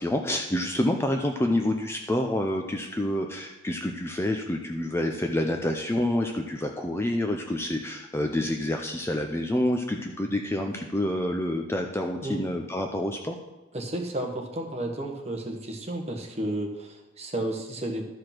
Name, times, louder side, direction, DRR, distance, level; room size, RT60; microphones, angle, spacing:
voice 1, 0.0-13.4, left 1 dB, 10° left, 3 dB, 0.5 m, -28 dB
voice 2, 13.7-18.1, right 1 dB, 30° right, 1 dB, 1.4 m, -32 dB
12.0 x 4.9 x 5.9 m, 1.1 s
head